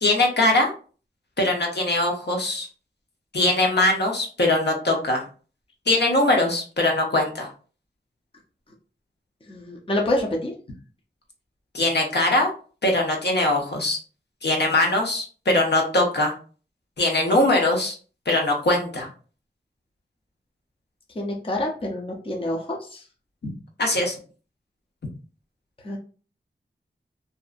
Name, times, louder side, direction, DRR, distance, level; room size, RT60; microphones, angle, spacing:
voice 1, 0.0-0.7 1.4-2.7 3.3-5.2 5.9-7.5 11.7-12.5 12.8-14.0 14.4-16.3 17.0-18.0 18.3-19.1 23.4-23.5 23.8-24.1, left 2 dB, 65° left, 1 dB, 0.8 m, -21 dB
voice 2, 9.5-10.5 21.2-23.0 25.8-26.0, left 1 dB, 30° left, -1 dB, 0.6 m, -27 dB
2.7 x 2.4 x 2.4 m, 0.38 s
wide cardioid pair, 75°, 19 cm